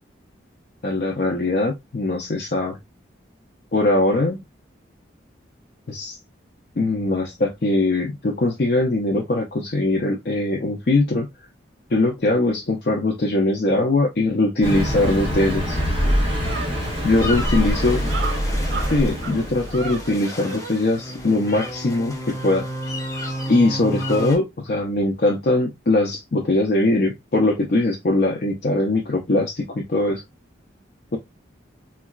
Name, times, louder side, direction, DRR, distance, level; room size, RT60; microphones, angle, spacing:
voice 1, 0.8-2.8 3.7-4.4 5.9-6.2 6.8-11.3 11.9-15.8 17.0-18.0 18.9-22.7 23.5-30.2, left 2 dB, 50° left, 0.5 m, -21 dB
Car passing by, 14.6-20.1, equal, 25° right, 1.2 m, -24 dB
sound 1, 15.8-20.8, right 4 dB, 75° right, 0.6 m, -35 dB
sound 2, 16.8-24.4, equal, 20° left, 0.8 m, -32 dB
3.8 x 2.2 x 2.2 m
head